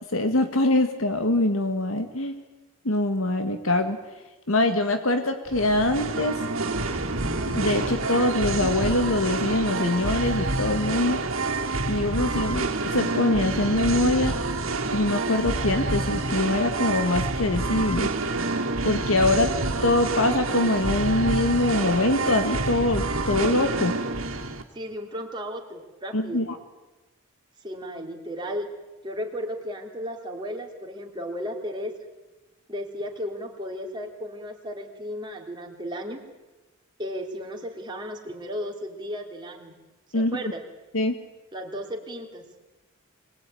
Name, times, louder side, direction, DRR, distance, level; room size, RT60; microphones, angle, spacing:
voice 1, 0.1-2.3 2.9-4.0 4.5-6.4 7.5-11.2 11.9-14.3 14.9-18.1 18.8-19.5 19.8-24.0 26.1-26.6 40.1-40.4 40.9-41.2, left 2 dB, 80° left, 7 dB, 1.8 m, -23 dB
Singing, 5.5-24.6, right 2 dB, 75° right, 2.3 m, -28 dB
voice 2, 24.7-26.4 27.6-28.7 29.0-31.9 32.7-36.2 37.0-39.7 40.1-40.6 41.5-42.5, equal, 20° right, 1 dB, 3.2 m, -34 dB
25.0 x 20.0 x 9.3 m, 1.1 s
head